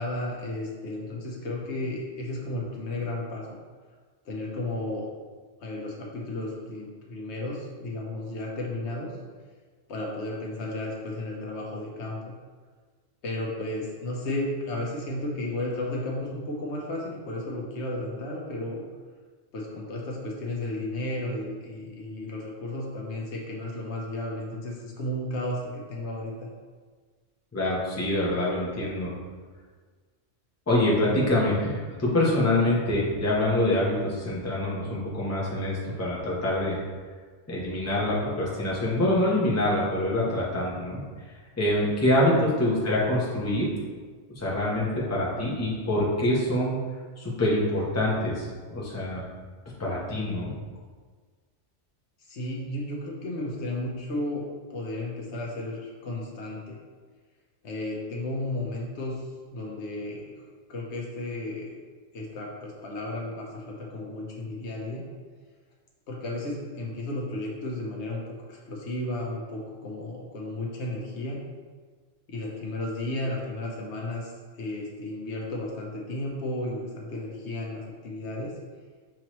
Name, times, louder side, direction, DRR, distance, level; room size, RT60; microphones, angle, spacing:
voice 1, 0.0-3.6 4.2-5.1 5.6-9.1 9.9-12.3 13.2-18.9 19.5-26.5 42.3-42.4 52.2-56.8 57.6-59.2 59.5-60.3 60.7-61.8 62.1-65.0 66.1-71.4 72.3-78.5, left 1 dB, 75° left, -2 dB, 1.1 m, -33 dB
voice 2, 27.5-29.1 30.7-36.8 37.5-41.0 41.6-43.7 44.4-46.8 47.2-49.2 49.8-50.5, left 1 dB, 15° left, -5 dB, 0.8 m, -25 dB
6.1 x 2.9 x 3.0 m, 1.5 s
omnidirectional pair, 1.2 m